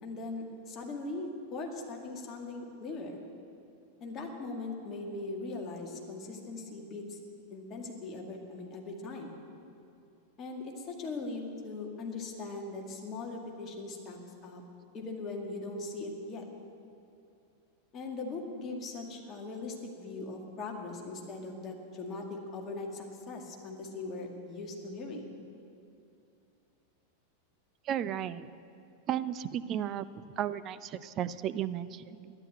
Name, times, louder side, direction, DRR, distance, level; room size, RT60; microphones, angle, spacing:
voice 1, 0.0-3.2 4.0-7.2 7.5-9.4 10.4-14.2 14.4-14.6 14.9-16.4 17.9-25.4, left 3 dB, 30° left, 1 dB, 2.0 m, -40 dB
voice 2, 27.9-28.5 29.1-30.0 30.4-32.3, right 10 dB, 35° right, 13 dB, 0.5 m, -34 dB
12.0 x 11.0 x 9.0 m, 2.6 s
figure-of-eight pair, 90°, 0 cm